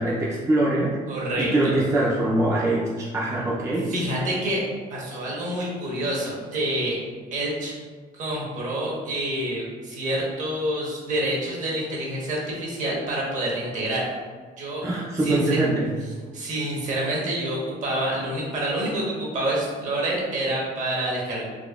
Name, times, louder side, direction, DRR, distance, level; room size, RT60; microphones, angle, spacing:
voice 1, 0.0-1.0 1.4-3.9 14.8-15.9, right 1 dB, 20° right, -5 dB, 0.4 m, -23 dB
voice 2, 1.1-1.7 3.9-4.6 4.9-7.0 7.3-7.7 8.1-14.1 14.6-14.8 15.2-15.6 16.3-21.4, right 1 dB, 55° right, -4 dB, 1.1 m, -27 dB
4.0 x 2.9 x 2.3 m, 1.5 s
cardioid pair, 135°, 16 cm